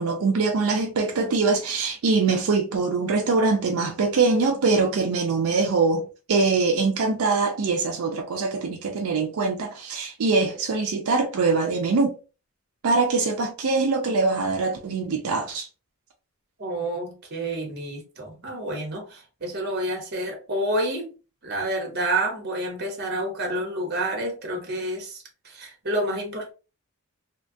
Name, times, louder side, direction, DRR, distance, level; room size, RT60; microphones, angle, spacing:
voice 1, 0.0-12.2 12.8-15.7, right 4 dB, 85° right, 0.5 m, -23 dB
voice 2, 16.6-21.1 21.4-26.5, right 1 dB, 50° right, 1.0 m, -29 dB
2.9 x 2.2 x 2.6 m
head